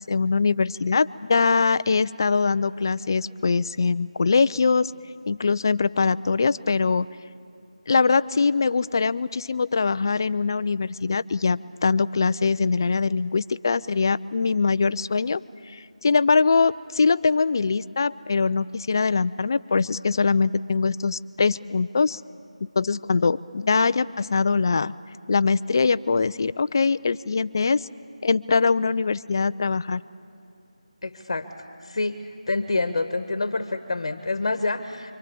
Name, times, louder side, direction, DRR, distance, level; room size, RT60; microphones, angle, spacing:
voice 1, 0.0-4.9 5.3-7.1 7.9-15.4 15.7-22.2 22.8-24.9 25.3-27.9 28.2-30.0, left 4 dB, 35° left, 16 dB, 0.5 m, -22 dB
voice 2, 31.0-31.5 31.8-35.1, left 3 dB, 50° left, 9 dB, 1.3 m, -27 dB
27.0 x 25.0 x 8.5 m, 2.6 s
figure-of-eight pair, 165°, 4 cm